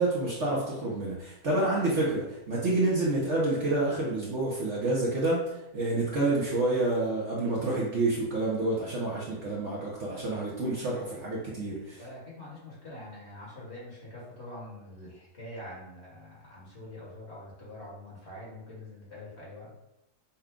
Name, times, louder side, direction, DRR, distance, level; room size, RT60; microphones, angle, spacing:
voice 1, 0.0-5.5 5.7-12.0, right 2 dB, 55° right, -4 dB, 1.0 m, -28 dB
voice 2, 11.9-19.8, left 1 dB, 40° left, -6 dB, 1.7 m, -45 dB
5.7 x 2.3 x 3.7 m, 0.90 s
omnidirectional pair, 1.8 m